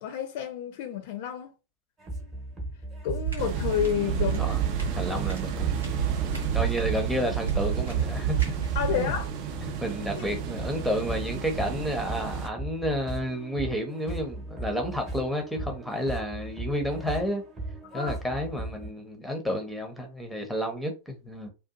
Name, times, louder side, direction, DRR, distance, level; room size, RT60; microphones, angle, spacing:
voice 1, 0.0-1.5 3.0-4.6 8.8-9.3 10.1-10.3 17.9-18.2, left 9 dB, 50° left, 0.5 m, -30 dB
sound 1, 2.0-18.9, right 2 dB, 25° right, 1.0 m, -38 dB
sound 2, 3.1-9.2, right 10 dB, 75° right, 1.1 m, -29 dB
sound 3, 3.4-12.5, right 6 dB, 45° right, 0.5 m, -34 dB
voice 2, 5.0-5.8 6.2-8.6 8.9-9.1 9.6-17.4 17.9-21.5, equal, ahead, 0.7 m, -31 dB
2.6 x 2.3 x 2.4 m
figure-of-eight pair, 90°, 0 cm